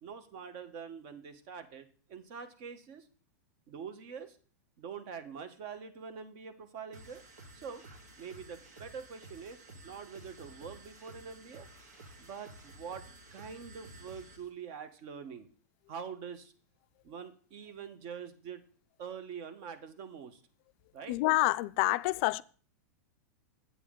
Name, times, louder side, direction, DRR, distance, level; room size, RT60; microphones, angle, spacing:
voice 1, 0.0-3.1 3.7-4.4 4.8-7.2 7.5-7.8 8.2-11.7 12.2-15.5 15.9-16.5 17.0-18.6 19.0-20.4 20.9-21.2, right 6 dB, 50° right, 1.1 m, -45 dB
sound 1, 6.9-14.5, right 2 dB, 90° right, 1.9 m, -53 dB
voice 2, 21.1-22.4, left 21 dB, 50° left, 0.3 m, -27 dB
8.3 x 8.2 x 3.7 m
hypercardioid pair, 130°, 9 cm